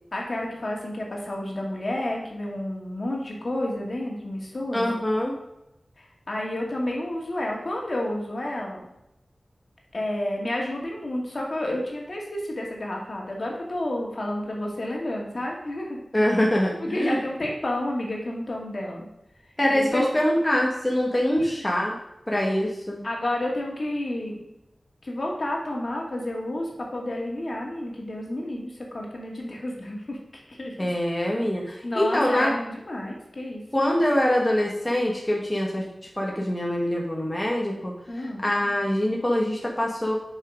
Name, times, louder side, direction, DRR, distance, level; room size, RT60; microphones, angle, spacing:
voice 1, 0.1-4.9 6.0-8.9 9.9-16.0 16.8-19.1 19.7-20.1 23.0-24.4 25.0-30.9 31.8-33.6 38.1-38.5, left 1 dB, 55° left, -1 dB, 2.1 m, -30 dB
voice 2, 4.7-5.3 16.1-17.2 19.6-21.9 22.3-23.0 30.8-32.5 33.7-35.9 36.2-40.2, left 1 dB, 15° left, -2 dB, 1.3 m, -24 dB
7.5 x 5.5 x 5.0 m, 0.86 s
wide cardioid pair, 70°, 0 cm